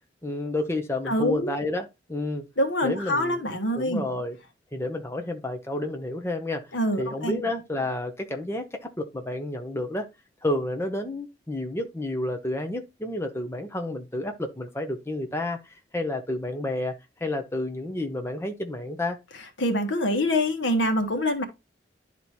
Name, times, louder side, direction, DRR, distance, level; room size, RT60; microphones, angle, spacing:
voice 1, 0.2-2.5 2.8-3.4 3.8-4.4 4.7-6.6 7.0-10.1 10.4-15.6 15.9-16.9 17.2-19.2, left 1 dB, 15° left, 0.8 m, -30 dB
voice 2, 1.1-1.5 2.6-4.1 6.7-7.4 19.6-21.4, left 1 dB, 85° left, 1.5 m, -25 dB
11.0 x 4.1 x 3.0 m
head